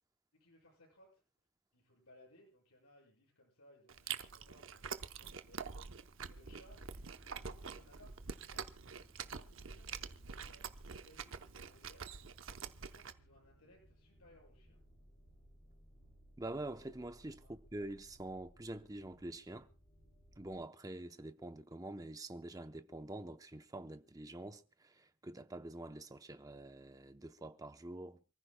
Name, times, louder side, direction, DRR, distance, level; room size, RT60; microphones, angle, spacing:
voice 1, 0.3-1.2 1.7-7.1 7.5-8.7 8.9-12.4 12.7-14.8 17.4-17.6, left 1 dB, 85° left, 6.8 m, -65 dB
Chewing mastication, 3.9-13.1, right 6 dB, 60° right, 0.8 m, -46 dB
sound 1, 6.7-20.6, equal, 30° left, 7.3 m, -64 dB
voice 2, 16.4-19.7 20.4-28.2, right 1 dB, 15° right, 0.7 m, -46 dB
28.0 x 14.5 x 2.2 m
head